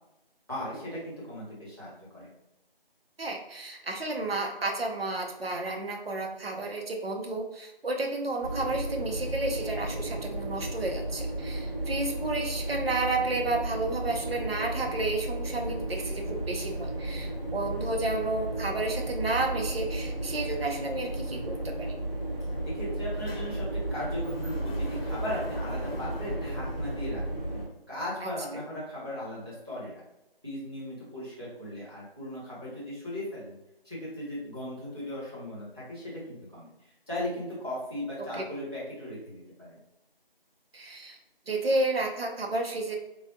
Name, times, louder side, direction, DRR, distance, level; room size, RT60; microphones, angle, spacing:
voice 1, 0.5-2.3 22.6-30.0 30.4-33.6 33.8-39.8, left 1 dB, 25° right, -9 dB, 0.8 m, -37 dB
voice 2, 3.2-22.0 28.2-28.6 38.4-38.5 40.7-41.2 41.5-43.0, right 2 dB, 75° right, 2 dB, 0.7 m, -31 dB
sound 1, 8.4-27.7, right 1 dB, 40° left, 0.9 m, -34 dB
Sliding door, 22.4-22.5 22.8-27.8, left 1 dB, 75° left, 0.7 m, -46 dB
3.2 x 2.2 x 2.7 m, 0.92 s
figure-of-eight pair, 170°, 30 cm